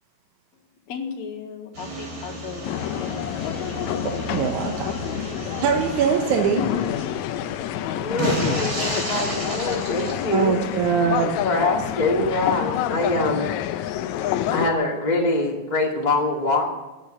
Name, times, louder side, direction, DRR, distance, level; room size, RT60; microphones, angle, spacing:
voice 1, 0.9-3.3 3.7-4.0, left 6 dB, 70° left, 3 dB, 2.9 m, -36 dB
sound 1, 1.7-10.8, right 1 dB, 35° right, 3.8 m, -32 dB
sound 2, 2.6-14.7, left 11 dB, 85° left, 2.0 m, -28 dB
voice 2, 4.0-4.9 5.6-6.7 10.3-11.4, right 7 dB, 85° right, 4 dB, 2.5 m, -23 dB
voice 3, 8.0-10.5 11.4-13.5 14.5-16.7, left 2 dB, 15° left, -1 dB, 2.2 m, -24 dB
13.0 x 10.0 x 8.3 m, 1.1 s
omnidirectional pair, 3.3 m